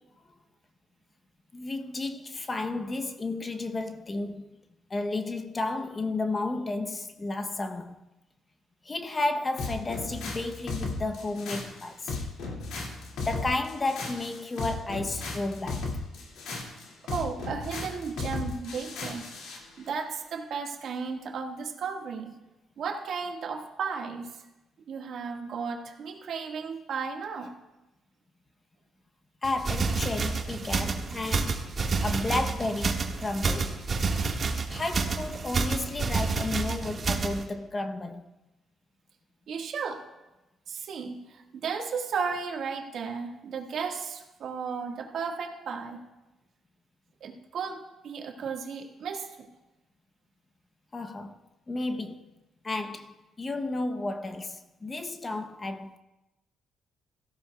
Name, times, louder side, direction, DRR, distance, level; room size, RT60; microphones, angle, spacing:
voice 1, 1.5-4.5 4.9-8.0 8.8-12.2 13.2-15.9 29.4-31.7 32.0-33.9 34.7-38.3 50.9-51.4 51.7-52.3 52.6-56.0, left 2 dB, 30° left, 0.8 m, -32 dB
sound 1, 9.6-19.6, left 3 dB, 85° left, 2.2 m, -36 dB
voice 2, 17.1-19.2 19.8-22.3 22.8-24.4 24.9-27.5 39.5-40.0 40.7-46.0 47.2-49.5, right 5 dB, 65° right, 1.6 m, -34 dB
sound 2, 29.4-37.4, right 4 dB, 40° right, 1.6 m, -29 dB
16.5 x 14.5 x 2.3 m
cardioid pair, 90°, 0 cm